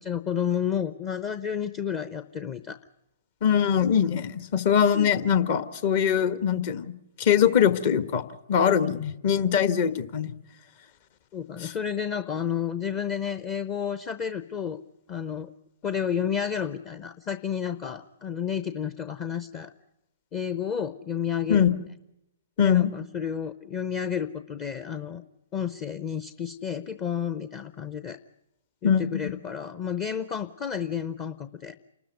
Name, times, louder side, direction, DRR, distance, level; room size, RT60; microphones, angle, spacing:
voice 1, 0.0-2.8 4.9-5.3 8.7-8.8 11.3-14.8 15.1-15.5 15.8-19.7 20.3-21.7 22.6-25.2 25.5-28.2 28.8-31.8, left 8 dB, 30° left, 11 dB, 0.8 m, -31 dB
voice 2, 3.4-6.9 7.2-8.2 8.5-10.3 11.6-11.7 21.5-21.7 22.6-22.9 28.8-29.3, left 8 dB, 50° left, 12 dB, 1.4 m, -22 dB
28.5 x 13.5 x 9.2 m, 0.85 s
hypercardioid pair, 125°, 0 cm